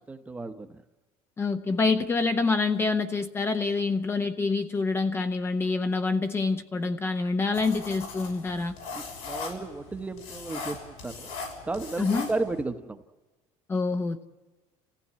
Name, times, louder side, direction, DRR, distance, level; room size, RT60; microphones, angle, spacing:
voice 1, 0.1-0.8 8.9-11.4 11.6-13.0, right 3 dB, 10° right, 0.9 m, -34 dB
voice 2, 1.4-8.7 12.0-12.3 13.7-14.2, left 3 dB, 20° left, 0.7 m, -26 dB
sound 1, 7.5-12.6, left 4 dB, 85° left, 6.3 m, -39 dB
29.0 x 16.0 x 8.5 m
cardioid pair, 150°, 13 cm